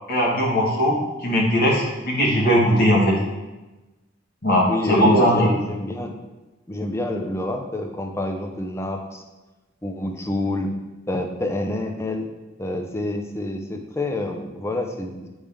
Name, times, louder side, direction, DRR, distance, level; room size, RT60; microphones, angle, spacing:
voice 1, 0.1-3.2 4.4-5.5, equal, 50° left, -4 dB, 1.2 m, -19 dB
voice 2, 4.7-6.1 6.7-9.2 9.8-10.7 11.1-12.3 12.6-15.3, left 1 dB, 15° left, 4 dB, 0.5 m, -28 dB
8.6 x 3.5 x 3.3 m, 1.1 s
head